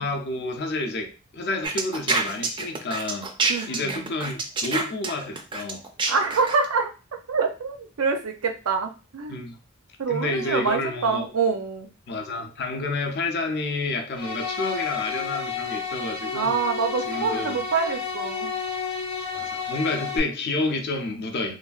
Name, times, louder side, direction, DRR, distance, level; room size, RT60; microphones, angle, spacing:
voice 1, 0.0-3.3 3.7-5.8 9.3-9.6 10.1-11.3 12.1-16.5 17.1-17.6 19.3-21.6, left 2 dB, 50° left, 0.5 m, -29 dB
sound 1, 1.6-6.6, right 4 dB, 25° right, 0.3 m, -26 dB
voice 2, 3.4-4.1 6.1-6.9 7.3-9.4 10.0-11.9 16.3-18.5 19.9-20.0, right 5 dB, 80° right, 0.6 m, -26 dB
sound 2, 14.1-20.2, left 5 dB, 90° left, 0.6 m, -31 dB
3.2 x 2.3 x 2.4 m
head